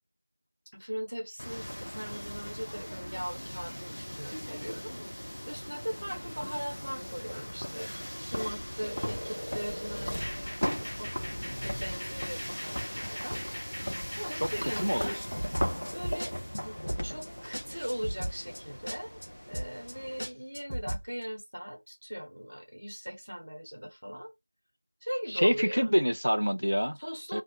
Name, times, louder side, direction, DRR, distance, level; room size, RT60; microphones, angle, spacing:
voice 1, 0.7-7.9 8.2-11.1 11.6-13.4 13.7-15.2 15.9-16.3 16.6-19.2 19.5-24.3 25.0-25.9 27.0-27.4, equal, 35° right, 0.7 m, -39 dB
sound 1, 1.4-20.2, equal, 50° left, 0.3 m, -38 dB
sound 2, 8.8-15.2, equal, 30° left, 0.9 m, -42 dB
voice 2, 14.4-15.1 25.3-27.0 27.3-27.4, equal, 80° right, 0.4 m, -27 dB
sound 3, 15.2-16.3 16.5-16.6 16.9-17.3 17.5-17.6 17.9-18.6 18.9-19.3 19.5-19.9 20.2-21.0, equal, 10° left, 0.8 m, -35 dB
2.5 x 2.0 x 2.7 m
figure-of-eight pair, 180°, 0 cm